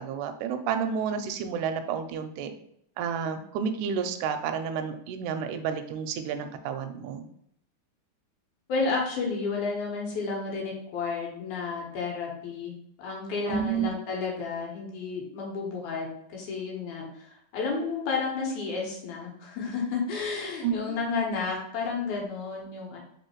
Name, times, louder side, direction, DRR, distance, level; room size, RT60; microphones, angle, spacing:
voice 1, 0.0-2.5 3.0-7.3 13.4-13.9 20.6-21.0, right 7 dB, 85° right, 7 dB, 2.0 m, -30 dB
voice 2, 8.7-12.7 13.0-23.0, left 4 dB, 90° left, -1 dB, 2.5 m, -31 dB
4.9 x 3.2 x 3.0 m, 0.72 s
omnidirectional pair, 3.4 m